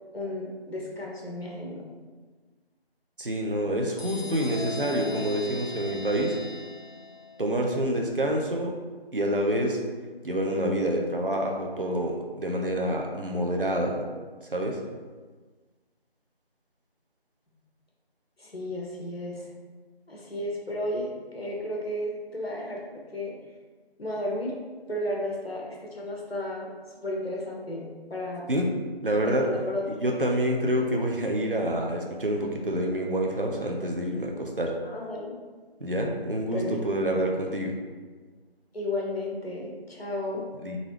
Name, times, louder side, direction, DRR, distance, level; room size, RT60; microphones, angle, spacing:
voice 1, 0.1-1.8 18.4-19.5 20.1-22.8 23.1-23.4 24.0-24.6 24.9-26.7 27.0-28.5 29.2-29.8 34.8-35.4 36.5-36.7 37.1-37.2 38.7-40.4, left 1 dB, 70° left, -3 dB, 1.3 m, -33 dB
voice 2, 3.2-6.4 7.4-8.7 9.1-9.8 10.2-14.0 14.5-14.8 28.5-28.7 29.0-29.5 29.9-34.8 35.8-37.8 40.6-40.8, right 1 dB, 55° right, 1 dB, 0.8 m, -27 dB
sound 1, 4.0-7.5, left 3 dB, 45° left, 0.7 m, -39 dB
4.0 x 3.7 x 3.2 m, 1.4 s
figure-of-eight pair, 180°, 32 cm